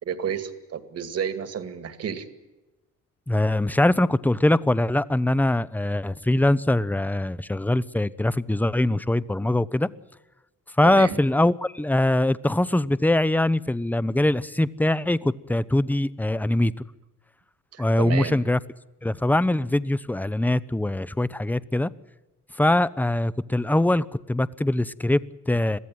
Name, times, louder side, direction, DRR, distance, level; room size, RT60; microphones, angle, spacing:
voice 1, 0.0-2.3 10.8-11.2 17.7-18.4, right 7 dB, 55° right, 10 dB, 2.3 m, -31 dB
voice 2, 3.3-9.9 10.8-16.7 17.8-18.6 19.0-21.9 22.6-25.8, left 1 dB, 5° left, 17 dB, 0.7 m, -22 dB
22.5 x 15.0 x 9.4 m, 1.1 s
cardioid pair, 90°, 30 cm